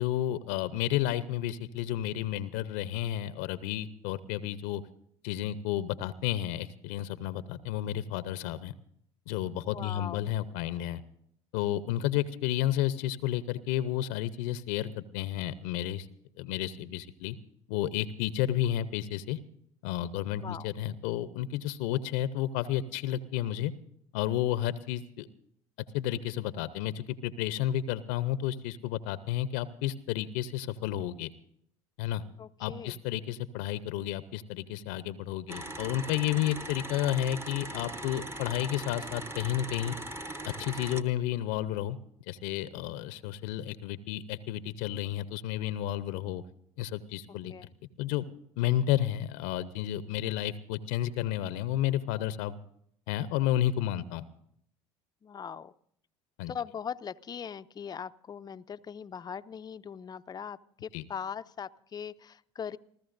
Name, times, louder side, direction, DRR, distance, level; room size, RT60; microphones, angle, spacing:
voice 1, 0.0-4.8 5.2-8.7 9.3-11.0 11.5-16.1 16.4-17.4 17.7-19.4 19.8-23.7 24.1-25.3 25.9-31.3 32.0-32.2 32.6-39.9 40.4-42.0 42.3-46.4 46.8-47.5 48.0-48.3 48.6-52.5 53.1-54.3 56.4-56.5 60.9-61.0, left 12 dB, 70° left, 15 dB, 0.7 m, -31 dB
voice 2, 9.7-10.2 20.4-20.7 32.4-33.0 47.5-47.7 55.2-55.7 56.5-62.8, left 7 dB, 25° left, 13 dB, 0.5 m, -40 dB
sound 1, 35.5-41.0, right 1 dB, 15° right, 1.0 m, -40 dB
29.5 x 13.5 x 2.6 m, 0.70 s
hypercardioid pair, 75°, 15 cm